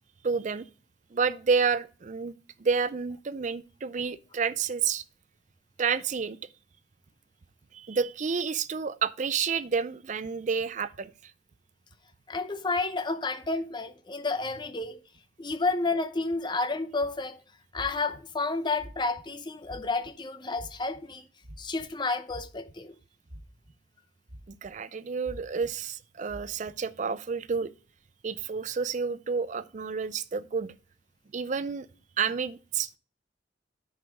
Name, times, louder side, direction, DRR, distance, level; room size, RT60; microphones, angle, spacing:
voice 1, 0.2-0.7 1.1-2.3 2.6-5.0 5.8-6.4 7.7-11.1 24.5-27.7 28.2-30.7 31.3-31.9 32.2-33.0, right 5 dB, 40° right, 0.4 m, -29 dB
voice 2, 12.3-15.0 15.4-17.4 17.7-21.2 21.6-23.0, left 3 dB, 25° left, 0.7 m, -31 dB
sound 1, 17.0-17.2 17.7-18.2 18.8-19.2 19.6-20.1 20.5-21.0 21.4-21.9 22.3-22.9 23.3-23.7 24.3-24.7 25.2-25.7 26.3-26.7, equal, 70° right, 3.9 m, -45 dB
9.7 x 4.7 x 5.1 m
head